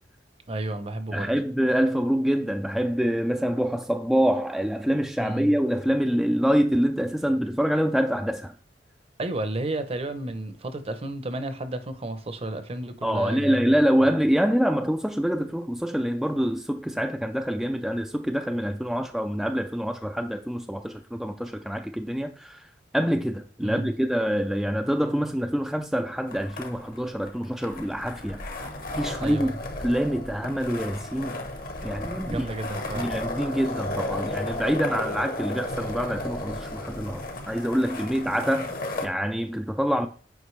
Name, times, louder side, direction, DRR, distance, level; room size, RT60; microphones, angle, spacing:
voice 1, 0.5-1.3 5.2-5.5 9.2-13.7 23.6-23.9 29.2-29.5 32.2-33.2, right 2 dB, 35° right, 0.7 m, -32 dB
voice 2, 1.1-8.5 13.0-22.7 22.9-28.4 29.0-29.6 29.8-31.4 31.8-32.5 32.9-38.7 39.0-40.1, equal, ahead, 0.3 m, -25 dB
sound 1, 26.3-39.1, left 2 dB, 55° left, 1.1 m, -34 dB
8.1 x 5.1 x 3.2 m
head